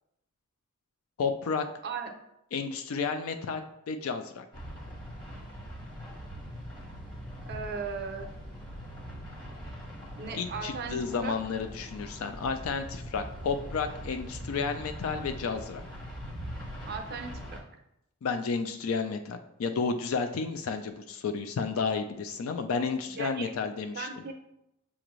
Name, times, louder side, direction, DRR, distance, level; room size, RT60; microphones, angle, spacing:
voice 1, 1.2-1.6 2.5-4.5 10.3-15.8 18.2-24.1, left 5 dB, 85° left, 7 dB, 0.4 m, -32 dB
sound 1, 4.5-17.6, equal, 25° left, 1.2 m, -42 dB
voice 2, 7.5-8.3 10.2-11.0 11.2-11.3 16.8-17.3 23.1-23.5 23.9-24.3, right 5 dB, 50° right, 5 dB, 0.6 m, -36 dB
7.0 x 2.5 x 3.0 m, 0.82 s
head